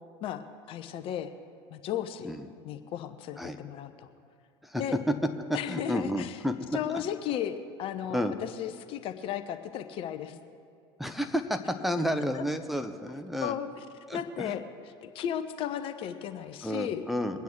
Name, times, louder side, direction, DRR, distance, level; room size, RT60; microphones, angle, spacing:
voice 1, 0.7-1.3 1.7-2.3 2.6-4.1 4.7-5.0 5.5-6.4 6.7-10.4 13.4-13.7 14.1-17.1, left 10 dB, 40° left, 9 dB, 0.8 m, -35 dB
voice 2, 5.5-6.5 6.9-7.0 8.1-8.3 11.0-13.5 14.1-14.5 16.6-17.4, equal, ahead, 6 dB, 0.8 m, -31 dB
22.5 x 9.2 x 4.6 m, 2.3 s
figure-of-eight pair, 70°, 14 cm